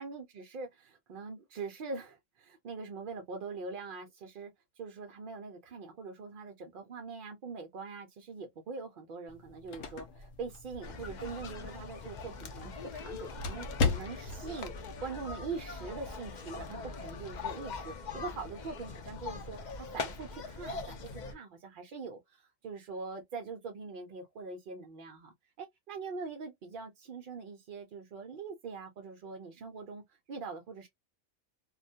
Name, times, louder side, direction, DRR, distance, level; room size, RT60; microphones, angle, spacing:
voice 1, 0.0-30.0 30.3-30.9, right 4 dB, 65° right, 0.5 m, -43 dB
sound 1, 9.3-14.5, left 4 dB, 80° left, 1.0 m, -37 dB
sound 2, 10.8-21.3, left 4 dB, 60° left, 0.5 m, -42 dB
2.3 x 2.1 x 2.6 m
omnidirectional pair, 1.3 m